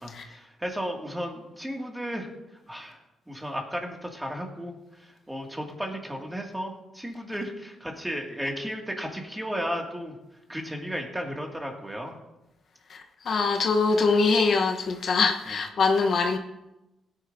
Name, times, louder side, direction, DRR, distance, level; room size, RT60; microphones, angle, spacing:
voice 1, 0.0-2.3 2.7-10.2 10.5-12.2 15.5-15.6, equal, 10° right, 2.1 m, -34 dB
voice 2, 12.9-16.4, left 4 dB, 55° left, 1.0 m, -23 dB
16.5 x 10.0 x 2.7 m
cardioid pair, 90°, 0 cm